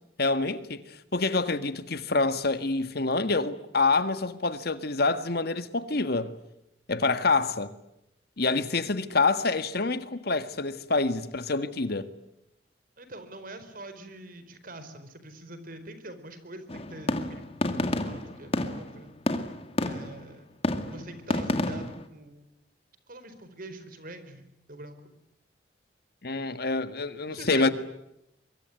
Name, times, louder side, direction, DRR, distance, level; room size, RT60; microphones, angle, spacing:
voice 1, 0.2-0.8 1.1-6.3 6.9-7.7 8.4-12.1 26.2-27.7, left 3 dB, 60° left, 1.8 m, -26 dB
voice 2, 13.0-17.5 18.0-19.1 19.8-20.5 20.9-22.5 23.1-25.1 27.3-27.7, right 1 dB, 55° right, 4.4 m, -44 dB
sound 1, 16.7-20.3 20.6-22.1, left 1 dB, 35° left, 2.2 m, -30 dB
24.0 x 24.0 x 9.5 m
head